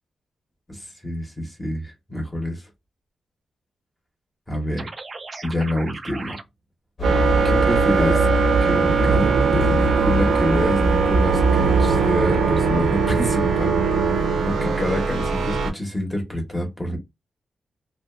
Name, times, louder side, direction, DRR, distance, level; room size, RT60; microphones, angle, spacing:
voice 1, 0.7-2.6 4.5-4.9 5.4-6.4 7.4-8.3 8.6-17.0, left 1 dB, 10° left, 1.0 m, -27 dB
sound 1, 4.8-6.4, right 3 dB, 35° right, 0.4 m, -36 dB
sound 2, 7.0-12.1, right 1 dB, 40° left, 1.1 m, -23 dB
sound 3, 7.0-15.7, right 5 dB, 85° right, 0.6 m, -21 dB
2.5 x 2.3 x 2.4 m
wide cardioid pair, 125°, 0 cm